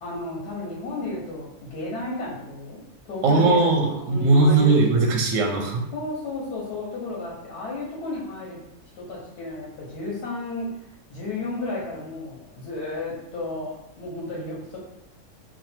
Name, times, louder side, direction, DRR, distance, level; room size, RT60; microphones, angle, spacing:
voice 1, 0.0-4.7 5.9-8.6 8.9-10.7 11.1-13.7 14.0-14.8, left 2 dB, 90° left, -5 dB, 1.5 m, -33 dB
voice 2, 3.2-5.8, right 3 dB, 70° right, 1 dB, 0.9 m, -19 dB
3.2 x 2.4 x 4.2 m, 0.84 s
omnidirectional pair, 1.6 m